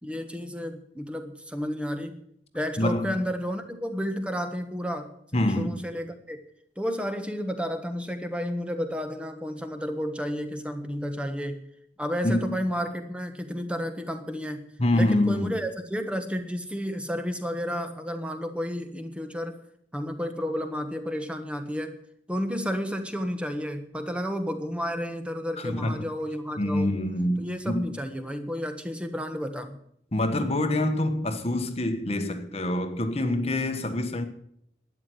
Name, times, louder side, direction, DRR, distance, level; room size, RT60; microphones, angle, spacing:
voice 1, 0.0-2.2 2.5-6.4 6.8-11.6 12.0-14.7 14.9-19.6 19.9-21.9 22.3-27.0 27.4-29.8, equal, 5° right, 1.3 m, -31 dB
voice 2, 2.8-3.2 5.3-5.8 12.2-12.6 14.8-15.5 25.6-26.0 26.6-28.0 30.1-34.3, left 1 dB, 35° left, 1.3 m, -26 dB
12.5 x 9.7 x 7.8 m
head